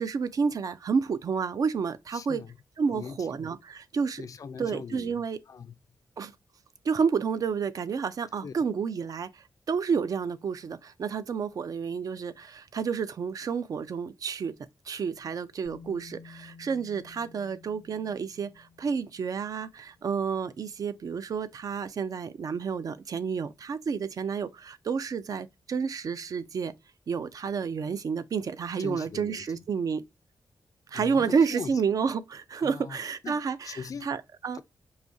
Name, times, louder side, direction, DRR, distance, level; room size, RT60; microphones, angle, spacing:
voice 1, 0.0-2.4 2.8-4.2 4.6-5.4 6.2-6.3 6.8-14.5 14.9-26.7 27.1-30.0 30.9-34.6, right 6 dB, 50° right, 0.4 m, -30 dB
voice 2, 2.1-2.6 2.9-3.3 4.2-5.7 8.4-8.5 28.8-29.6 30.9-31.8 32.6-33.0 33.2-34.1 34.5-34.6, left 6 dB, 50° left, 0.4 m, -41 dB
Bass guitar, 15.6-21.7, left 5 dB, 70° right, 2.6 m, -54 dB
4.7 x 2.7 x 2.6 m
wide cardioid pair, 155°, 8 cm